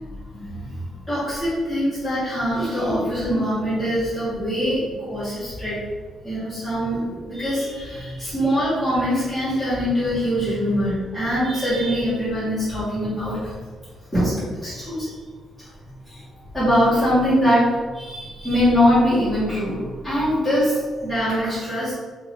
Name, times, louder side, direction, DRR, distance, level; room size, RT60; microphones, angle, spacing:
voice 1, 0.0-5.8 6.2-13.5 14.1-15.1 15.6-15.7 16.0-16.2 16.5-21.9, equal, 5° right, -14 dB, 1.5 m, -23 dB
3.0 x 2.5 x 3.3 m, 1.5 s
cardioid pair, 175°, 0 cm